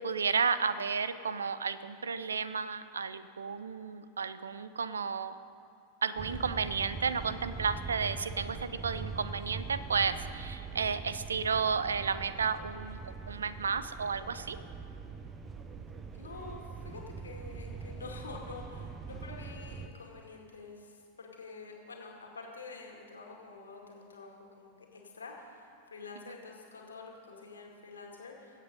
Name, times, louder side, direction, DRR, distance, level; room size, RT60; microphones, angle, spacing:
voice 1, 0.0-5.4 6.0-14.6 26.3-26.4, right 5 dB, 70° right, 14 dB, 0.5 m, -32 dB
sound 1, 6.2-19.9, right 5 dB, 20° right, 0.8 m, -42 dB
voice 2, 16.1-28.6, left 4 dB, 75° left, 0 dB, 2.2 m, -48 dB
21.0 x 8.3 x 5.3 m, 2.7 s
figure-of-eight pair, 90°, 0 cm